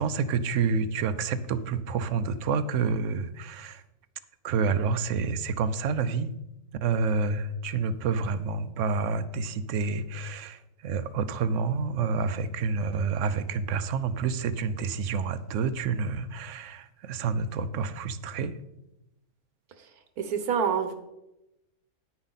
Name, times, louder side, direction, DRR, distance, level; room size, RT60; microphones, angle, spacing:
voice 1, 0.0-3.8 4.4-6.3 6.8-18.5, right 5 dB, 65° right, 13 dB, 0.9 m, -28 dB
voice 2, 20.2-21.0, right 7 dB, 80° right, 8 dB, 1.6 m, -27 dB
10.0 x 9.7 x 4.0 m, 0.92 s
omnidirectional pair, 1.6 m